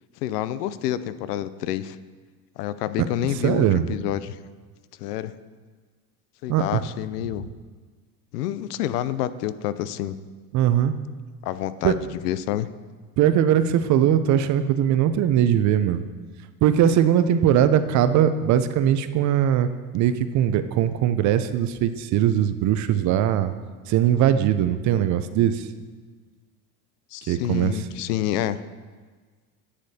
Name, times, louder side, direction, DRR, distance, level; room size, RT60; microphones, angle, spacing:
voice 1, 0.2-2.0 2.6-4.4 5.0-5.3 6.4-7.5 8.3-10.2 11.4-12.7 27.1-28.6, left 12 dB, 85° left, 15 dB, 0.5 m, -28 dB
voice 2, 3.2-3.8 6.5-6.8 10.5-10.9 11.8-12.0 13.2-16.0 16.6-19.7 19.9-23.5 23.9-25.7 27.3-27.7, right 10 dB, 40° right, 12 dB, 0.5 m, -20 dB
9.8 x 6.4 x 2.8 m, 1.5 s
supercardioid pair, 95°, 46 cm